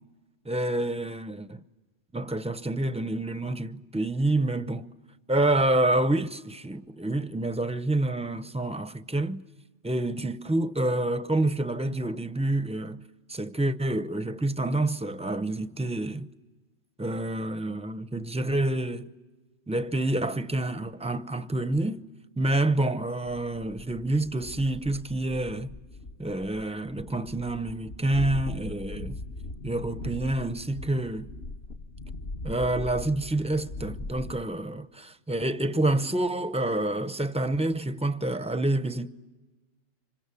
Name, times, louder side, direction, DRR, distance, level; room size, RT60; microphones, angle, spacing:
voice 1, 0.4-1.5 2.1-4.9 5.3-9.4 9.8-13.0 13.3-16.3 17.0-19.1 19.7-22.0 22.4-25.7 26.2-29.2 29.6-31.3 32.4-39.1, right 2 dB, 5° right, 0.6 m, -28 dB
sound 1, 23.3-34.4, left 2 dB, 60° left, 1.3 m, -40 dB
26.5 x 25.0 x 8.4 m
omnidirectional pair, 1.2 m